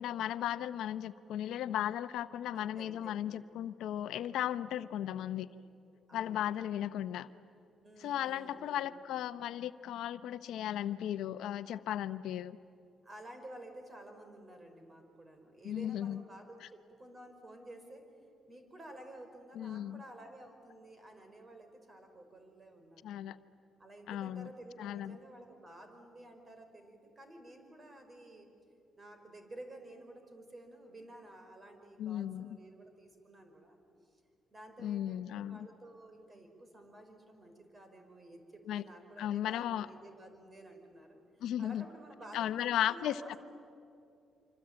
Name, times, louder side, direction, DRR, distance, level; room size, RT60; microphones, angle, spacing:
voice 1, 0.0-5.5 6.1-7.3 8.0-12.6 15.6-16.2 19.5-20.0 23.0-23.4 24.1-24.5 24.8-25.2 32.0-32.6 34.8-35.7 38.7-38.8 39.2-39.9 41.4-41.8 42.3-43.4, left 11 dB, 85° left, 13 dB, 0.8 m, -36 dB
voice 2, 2.5-3.2 5.0-5.3 6.1-6.4 7.8-9.0 13.0-18.1 18.5-23.2 23.8-28.5 29.0-33.8 34.5-41.2 41.6-43.4, right 1 dB, 30° right, 6 dB, 5.0 m, -52 dB
26.0 x 26.0 x 8.8 m, 2.6 s
cardioid pair, 90°, 0 cm